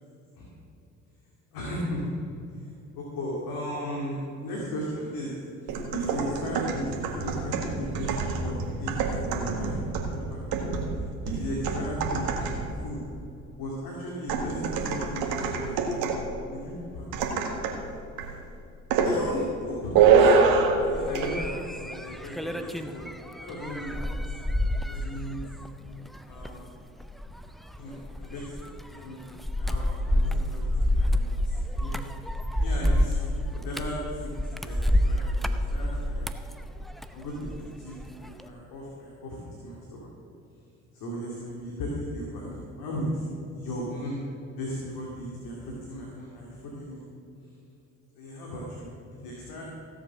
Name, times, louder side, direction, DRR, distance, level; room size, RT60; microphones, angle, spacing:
voice 1, 1.5-2.0 2.6-5.3 5.6-9.0 9.2-10.8 11.2-12.3 12.5-13.0 13.6-16.1 16.5-17.1 19.0-20.3 20.8-21.5 21.8-23.1 23.4-25.4 26.3-26.7 27.8-28.5 28.9-29.2 29.5-30.7 30.9-32.0 32.6-36.3 37.1-37.5 37.8-40.1 40.9-43.2 43.5-44.2 44.6-47.0 48.2-49.6, equal, 65° left, -3 dB, 2.5 m, -36 dB
sound 1, 5.7-12.8 14.3-16.3 17.1-17.8 18.2-18.4 18.9-19.2 19.9-20.8 21.1-21.3, right 5 dB, 65° right, 1.8 m, -25 dB
sound 2, 20.9-37.7 38.0-38.4, left 1 dB, ahead, 0.7 m, -29 dB
16.5 x 7.5 x 6.2 m, 2.7 s
hypercardioid pair, 55°, 39 cm